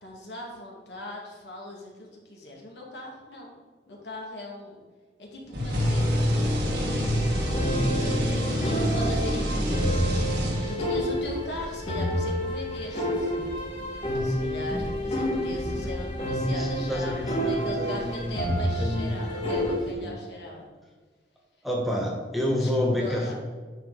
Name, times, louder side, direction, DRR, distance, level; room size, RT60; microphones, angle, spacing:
voice 1, 0.0-3.5 3.9-4.8 5.2-7.1 7.7-13.3 14.1-20.7 22.6-23.3, left 1 dB, 70° left, -1 dB, 2.0 m, -39 dB
sound 1, 5.5-11.0, equal, 75° right, 1.7 m, -26 dB
sound 2, 6.0-19.9, equal, 25° right, 1.8 m, -40 dB
sound 3, 6.8-19.8, equal, 40° left, 2.0 m, -30 dB
voice 2, 16.5-20.2 21.6-23.3, left 1 dB, ahead, -2 dB, 1.1 m, -29 dB
9.2 x 5.4 x 4.0 m, 1.4 s
head